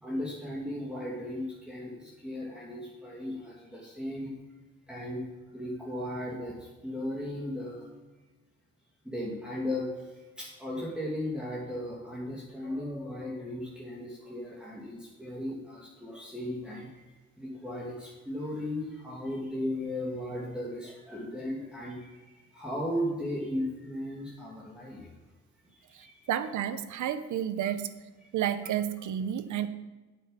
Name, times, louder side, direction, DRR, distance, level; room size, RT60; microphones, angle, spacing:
voice 1, 0.0-4.3 4.9-5.2 5.5-7.9 9.0-9.9 10.4-16.9 17.4-25.1 25.9-26.3, left 1 dB, 5° right, -6 dB, 2.7 m, -36 dB
voice 2, 25.9-27.9 28.3-29.7, right 10 dB, 75° right, 13 dB, 0.8 m, -31 dB
8.6 x 8.4 x 5.5 m, 1.2 s
cardioid pair, 90°, 30 cm